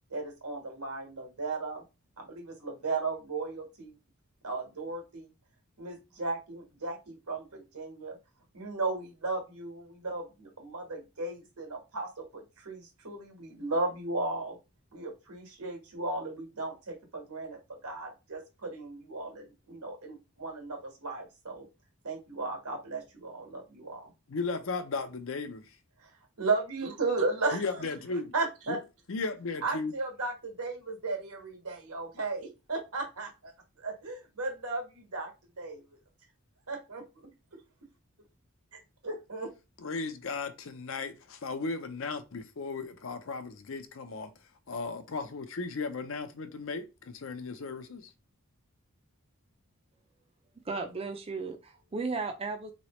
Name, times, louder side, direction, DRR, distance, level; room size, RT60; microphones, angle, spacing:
voice 1, 0.1-1.8 2.2-3.9 4.4-5.3 5.8-8.2 8.5-14.6 14.9-21.7 22.0-24.1 26.0-26.1 26.4-27.8 28.3-28.8 29.6-33.5 33.8-35.3 35.6-35.8 36.7-37.6 38.7-39.5, right 3 dB, 85° right, 1.4 m, -35 dB
voice 2, 24.3-25.7 27.5-28.3 28.7-28.8 29.1-29.9 39.8-44.3 44.7-48.1, left 4 dB, 60° left, 0.5 m, -36 dB
voice 3, 50.6-52.7, right 4 dB, 25° right, 0.4 m, -35 dB
3.8 x 3.1 x 3.0 m
head